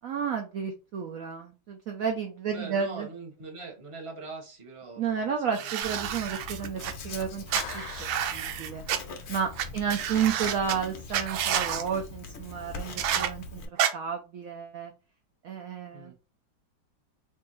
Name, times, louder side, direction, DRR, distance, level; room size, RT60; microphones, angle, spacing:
voice 1, 0.0-3.1 5.0-8.0 8.3-8.8 9.3-13.6 13.9-14.9 15.4-16.1, right 7 dB, 75° right, 3 dB, 0.8 m, -32 dB
voice 2, 2.5-5.7 6.0-6.1 9.6-10.0 15.9-16.1, right 3 dB, 20° right, 0 dB, 0.9 m, -43 dB
sound 1, 5.5-6.9 7.5-9.0 9.6-9.7 9.9-10.7 11.1-11.8 13.0-13.3 13.8-13.9, right 9 dB, 90° right, 1.4 m, -29 dB
Writing, 5.8-13.7, left 3 dB, 65° left, 0.6 m, -42 dB
Clapping, 7.6-9.4, left 10 dB, 85° left, 1.4 m, -43 dB
4.5 x 2.6 x 3.0 m, 0.31 s
omnidirectional pair, 2.1 m